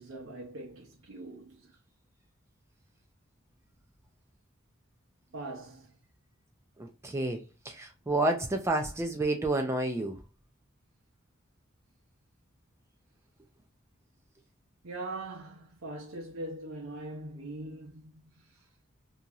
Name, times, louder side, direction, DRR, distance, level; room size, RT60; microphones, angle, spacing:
voice 1, 0.0-1.7 5.3-5.9 14.8-18.4, right 2 dB, 90° right, 0.8 m, -42 dB
voice 2, 6.8-10.2, right 2 dB, 15° right, 0.3 m, -30 dB
2.9 x 2.6 x 2.3 m
head